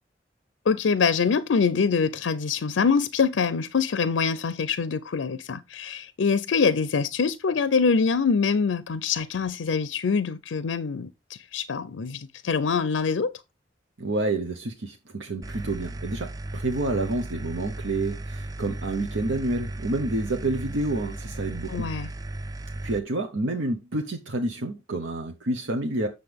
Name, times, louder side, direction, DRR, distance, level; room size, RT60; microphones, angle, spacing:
voice 1, 0.7-13.3 21.7-22.1, left 5 dB, 90° left, 0.5 m, -24 dB
voice 2, 14.0-21.7 22.8-26.1, right 2 dB, 90° right, 1.0 m, -29 dB
sound 1, 15.4-23.0, right 1 dB, 20° right, 0.3 m, -35 dB
7.8 x 6.7 x 3.4 m
head